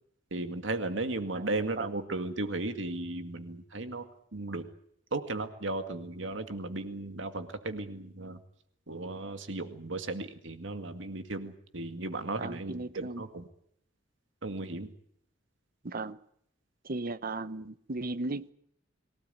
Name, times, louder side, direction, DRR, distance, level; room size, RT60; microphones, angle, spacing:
voice 1, 0.3-4.1 4.3-4.7 5.1-8.4 8.9-13.4 14.4-14.9, right 2 dB, 70° right, 8 dB, 2.1 m, -35 dB
voice 2, 1.3-1.9 12.4-13.2 15.8-16.2 16.8-18.5, right 2 dB, 50° right, 14 dB, 1.0 m, -36 dB
23.5 x 17.5 x 9.4 m, 0.70 s
head